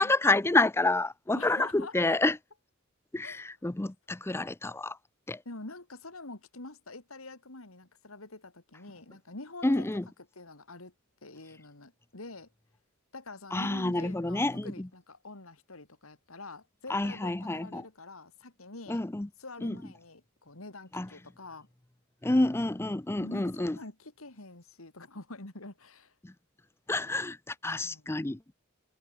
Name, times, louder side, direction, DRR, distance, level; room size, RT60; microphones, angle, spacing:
voice 1, 0.0-2.4 3.1-5.0 5.3-5.4 9.6-10.0 13.5-14.9 16.9-17.8 18.9-19.3 19.6-19.8 20.9-21.1 22.2-23.8 26.2-26.3 26.9-28.4, left 2 dB, 10° left, 0.5 m, -28 dB
voice 2, 1.3-2.2 3.2-3.5 4.3-4.4 5.4-9.9 10.3-10.9 11.2-12.5 13.1-19.0 19.4-21.7 23.2-26.1 27.8-28.1, left 2 dB, 75° left, 3.0 m, -46 dB
head